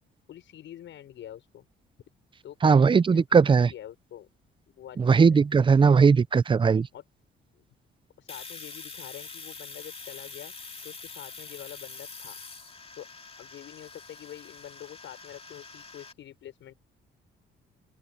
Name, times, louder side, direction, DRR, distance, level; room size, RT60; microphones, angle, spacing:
voice 1, 0.3-1.6 2.4-4.3 4.7-5.4 6.9-7.0 7.5-7.8 8.2-10.5 10.8-12.4 12.9-13.1 13.4-16.7, left 11 dB, 75° left, 6.6 m, -46 dB
voice 2, 2.6-3.7 5.1-6.9, right 5 dB, 25° right, 0.5 m, -19 dB
Domestic sounds home sounds, 8.3-16.1, left 4 dB, 30° left, 2.8 m, -44 dB
cardioid pair, 90°, 20 cm